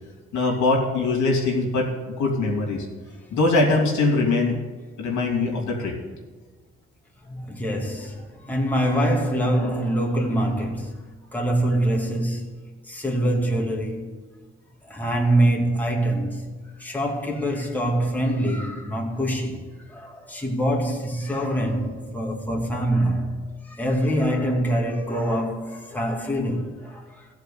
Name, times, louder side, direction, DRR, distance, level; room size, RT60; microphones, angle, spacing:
voice 1, 0.3-1.9 2.2-2.9 3.3-4.6 5.0-6.0, left 3 dB, 65° left, 2.8 m, -22 dB
voice 2, 7.2-11.0 11.3-12.5 12.9-14.2 14.8-16.5 16.8-27.3, right 1 dB, 5° left, 2.4 m, -25 dB
14.5 x 4.9 x 8.4 m
hypercardioid pair, 55°, 32 cm